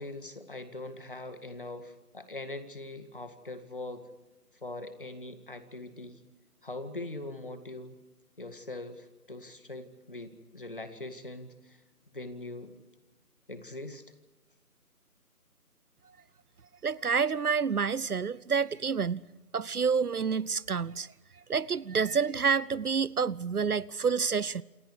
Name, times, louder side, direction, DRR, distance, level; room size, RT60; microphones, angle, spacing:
voice 1, 0.0-4.0 4.6-6.2 6.6-8.0 8.4-11.8 12.1-12.7 13.5-14.0, left 2 dB, 35° left, 2.0 m, -42 dB
voice 2, 16.8-19.2 19.5-21.1 21.5-24.6, right 6 dB, 70° right, 0.7 m, -28 dB
28.0 x 25.5 x 4.9 m
figure-of-eight pair, 180°, 47 cm